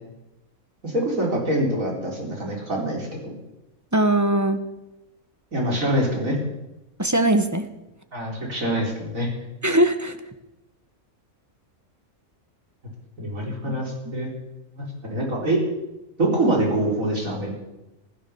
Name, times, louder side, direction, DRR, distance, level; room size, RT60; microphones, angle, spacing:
voice 1, 0.8-3.3 5.5-6.4 8.1-9.3 13.2-14.3 14.8-15.6 16.2-17.5, right 1 dB, 75° right, -1 dB, 4.5 m, -25 dB
voice 2, 3.9-4.6 7.0-7.7 9.6-10.2 13.7-14.1, right 1 dB, 15° right, 8 dB, 1.0 m, -21 dB
16.0 x 12.5 x 7.1 m, 0.96 s
omnidirectional pair, 1.4 m